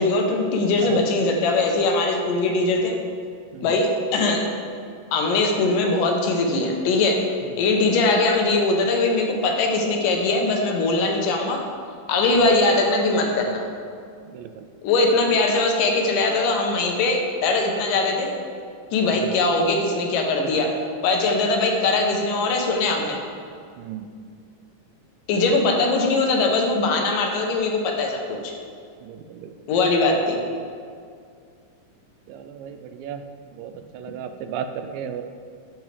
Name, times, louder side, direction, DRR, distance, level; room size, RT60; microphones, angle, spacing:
voice 1, 0.0-2.9 3.6-4.4 5.1-7.2 7.6-11.6 12.1-13.6 14.8-18.3 18.9-20.7 21.0-23.2 25.3-28.5 29.7-30.4, left 3 dB, 80° left, 2 dB, 2.5 m, -21 dB
voice 2, 14.3-14.7 19.1-19.3 23.8-24.1 29.0-29.5 32.3-33.2 33.5-35.2, right 8 dB, 90° right, 8 dB, 2.3 m, -35 dB
12.0 x 6.2 x 3.3 m, 2.2 s
omnidirectional pair, 3.9 m